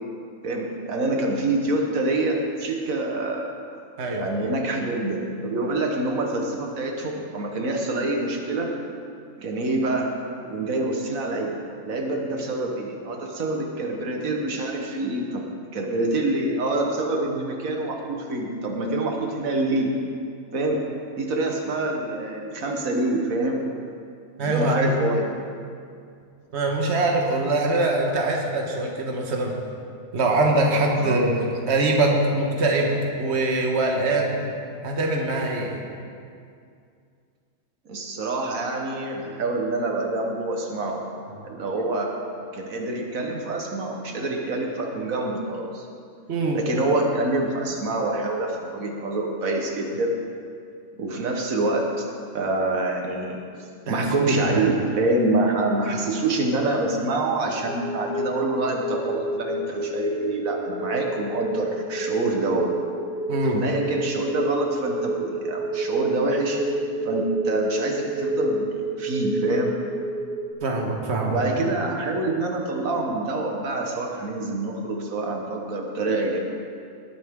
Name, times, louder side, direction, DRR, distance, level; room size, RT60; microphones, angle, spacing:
voice 1, 0.4-3.5 4.1-8.7 9.4-10.1 10.4-11.6 11.8-15.4 15.7-19.9 20.5-23.6 24.4-25.3 31.0-31.2 37.8-41.0 41.4-42.1 42.5-45.9 46.5-50.2 51.0-52.1 52.3-53.4 53.9-62.8 63.5-66.6 67.0-68.7 69.0-69.8 71.3-76.4, right 2 dB, 80° right, 1 dB, 1.7 m, -26 dB
voice 2, 24.4-25.0 26.5-29.5 30.1-32.9 33.2-34.3 34.8-35.8 46.3-46.6 53.9-54.7 63.3-63.6 70.6-71.3, right 2 dB, 55° right, 0 dB, 1.6 m, -23 dB
sound 1, 57.6-70.5, right 2 dB, 30° right, 1.3 m, -29 dB
19.0 x 9.8 x 3.7 m, 2.3 s
omnidirectional pair, 1.4 m